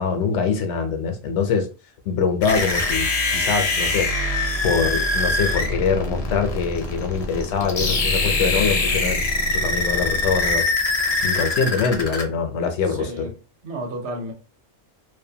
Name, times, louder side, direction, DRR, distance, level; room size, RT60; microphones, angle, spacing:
voice 1, 0.0-1.7 2.1-4.1 4.6-10.7 11.2-13.3, left 5 dB, 80° left, 0.9 m, -24 dB
sound 1, 2.4-12.2, left 2 dB, 45° left, 0.5 m, -23 dB
voice 2, 12.9-13.3 13.6-14.3, right 1 dB, 75° right, 1.1 m, -32 dB
2.5 x 2.1 x 2.7 m
omnidirectional pair, 1.2 m